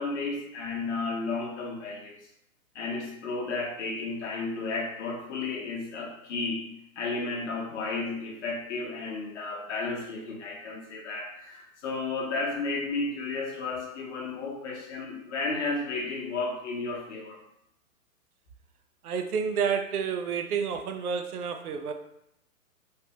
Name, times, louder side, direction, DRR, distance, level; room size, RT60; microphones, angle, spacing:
voice 1, 0.0-2.1 2.7-6.7 7.0-17.4, left 3 dB, 55° left, -2 dB, 0.8 m, -33 dB
voice 2, 19.0-21.9, right 6 dB, 90° right, 6 dB, 0.6 m, -29 dB
3.3 x 2.1 x 2.8 m, 0.80 s
hypercardioid pair, 155°, 43 cm